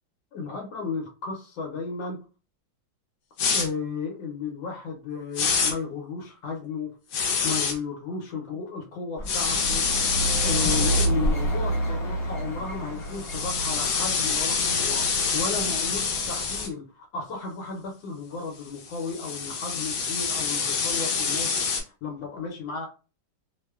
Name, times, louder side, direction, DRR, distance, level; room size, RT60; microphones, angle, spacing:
voice 1, 0.3-2.2 3.5-6.9 7.4-9.8 10.4-21.5 21.8-22.9, left 4 dB, 90° left, 0 dB, 1.4 m, -34 dB
sound 1, 3.4-3.7 5.4-5.7 7.1-7.7 9.3-11.1 13.1-16.7 18.8-21.8, left 5 dB, 70° left, 1.1 m, -26 dB
sound 2, 9.2-16.7, right 1 dB, 40° left, 1.0 m, -30 dB
3.2 x 2.0 x 2.2 m, 0.34 s
omnidirectional pair, 2.0 m